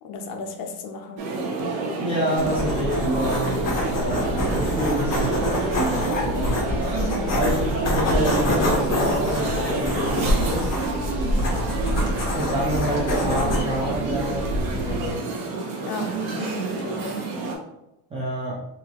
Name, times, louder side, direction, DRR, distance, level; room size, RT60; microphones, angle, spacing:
voice 1, 0.0-1.3 7.0-7.4 15.9-17.4, left 3 dB, 50° left, 0.6 m, -34 dB
sound 1, 1.2-17.5, right 3 dB, 55° right, 0.9 m, -28 dB
voice 2, 2.0-6.6 7.3-10.7 12.3-15.2 18.1-18.6, equal, 15° right, 0.4 m, -28 dB
sound 2, 2.4-15.1, left 1 dB, 35° left, 1.2 m, -26 dB
3.9 x 2.6 x 2.9 m
cardioid pair, 160°, 46 cm